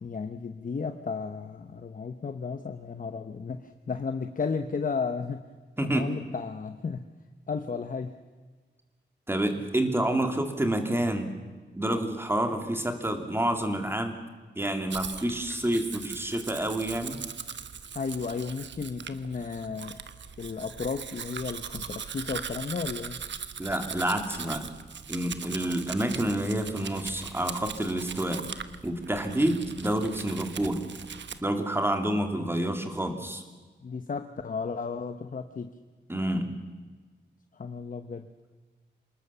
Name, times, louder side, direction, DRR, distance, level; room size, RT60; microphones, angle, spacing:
voice 1, 0.0-5.5 5.8-7.1 7.5-8.2 10.0-10.4 17.9-20.0 20.4-23.2 33.8-35.8 37.5-38.3, left 5 dB, 45° left, 8 dB, 1.0 m, -34 dB
voice 2, 5.8-6.1 9.3-11.3 11.7-14.2 14.6-17.2 23.6-24.7 25.1-28.5 28.8-30.8 31.4-33.4 36.1-36.5, right 1 dB, 10° right, 6 dB, 2.8 m, -28 dB
Domestic sounds home sounds, 14.9-31.4, right 7 dB, 75° right, 1.1 m, -40 dB
27.0 x 19.5 x 7.0 m, 1.4 s
wide cardioid pair, 120°, 19 cm